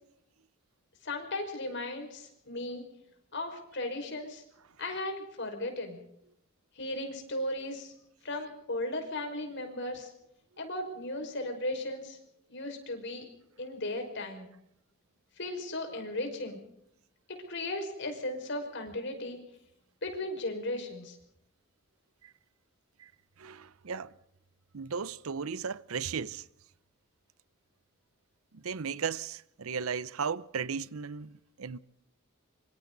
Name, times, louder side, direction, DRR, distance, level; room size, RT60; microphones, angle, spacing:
voice 1, 1.0-2.8 3.3-4.4 4.8-6.0 6.8-7.9 8.2-10.1 10.6-12.2 12.5-13.3 13.6-14.5 15.4-16.6 17.3-19.4 20.0-21.2, left 1 dB, 60° left, 5.4 m, -36 dB
voice 2, 23.4-24.1 24.7-26.4 28.5-31.8, right 6 dB, 85° right, 0.7 m, -36 dB
25.5 x 25.0 x 4.0 m
head